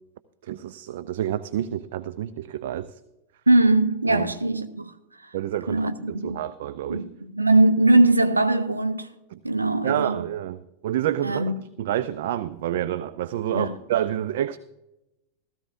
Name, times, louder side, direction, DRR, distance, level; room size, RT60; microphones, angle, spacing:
voice 1, 0.4-2.9 4.1-4.3 5.3-7.0 9.3-9.4 9.8-11.4 11.8-14.6, right 11 dB, 55° right, 0.4 m, -28 dB
voice 2, 3.5-4.9 5.7-6.4 6.9-9.1 9.4-10.2 11.2-11.6 13.5-13.8, right 2 dB, 80° right, 0.8 m, -21 dB
16.0 x 14.0 x 2.6 m
figure-of-eight pair, 90°, 0 cm